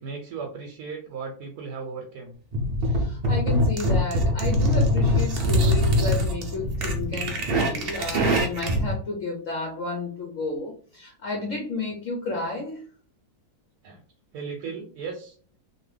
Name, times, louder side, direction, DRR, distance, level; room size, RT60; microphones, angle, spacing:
voice 1, 0.0-2.4 13.8-14.0 14.3-15.3, right 5 dB, 90° right, 2 dB, 1.2 m, -36 dB
sound 1, 2.5-8.9, equal, 55° right, 0.7 m, -23 dB
voice 2, 2.9-12.8, left 3 dB, 60° left, 0 dB, 1.0 m, -32 dB
2.9 x 2.5 x 3.2 m, 0.42 s
omnidirectional pair, 1.7 m